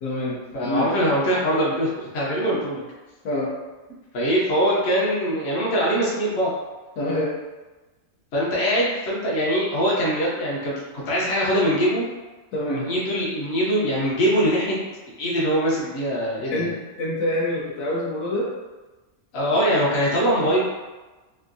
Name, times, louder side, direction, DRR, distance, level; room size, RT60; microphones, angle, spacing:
voice 1, 0.0-0.4 0.6-0.9 3.2-3.5 7.0-7.3 12.5-12.9 16.5-16.7 17.0-18.5 19.5-19.6, left 1 dB, 75° left, -6 dB, 1.1 m, -26 dB
voice 2, 0.5-2.8 4.1-6.5 8.3-12.0 12.6-14.8 15.2-16.7 19.3-20.6, equal, 55° left, -6 dB, 1.0 m, -22 dB
3.5 x 2.5 x 2.6 m, 1.2 s
omnidirectional pair, 1.5 m